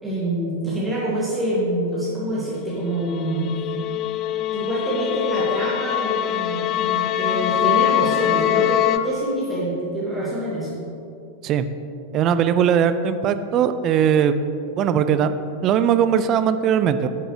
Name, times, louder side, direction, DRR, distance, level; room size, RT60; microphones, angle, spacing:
voice 1, 0.0-3.6 4.5-10.7, right 1 dB, 5° right, -9 dB, 2.0 m, -26 dB
sound 1, 3.1-9.0, left 13 dB, 35° left, 0.3 m, -23 dB
voice 2, 12.1-14.4 14.8-17.1, right 8 dB, 35° right, 11 dB, 0.4 m, -19 dB
9.7 x 7.7 x 3.1 m, 2.7 s
figure-of-eight pair, 90°, 0 cm